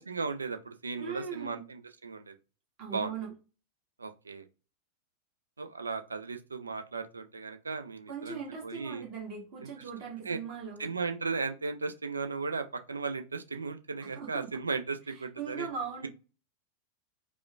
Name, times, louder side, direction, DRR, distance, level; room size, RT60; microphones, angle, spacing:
voice 1, 0.0-2.3 2.9-3.1 4.0-4.5 5.6-9.0 9.6-9.7 10.3-10.4 10.8-15.7, right 4 dB, 75° right, 8 dB, 0.4 m, -36 dB
voice 2, 1.0-1.6 2.8-3.3 8.1-10.9 14.0-14.5 15.4-16.1, right 6 dB, 40° right, -1 dB, 1.4 m, -39 dB
4.8 x 2.1 x 2.4 m, 0.32 s
figure-of-eight pair, 90°, 0 cm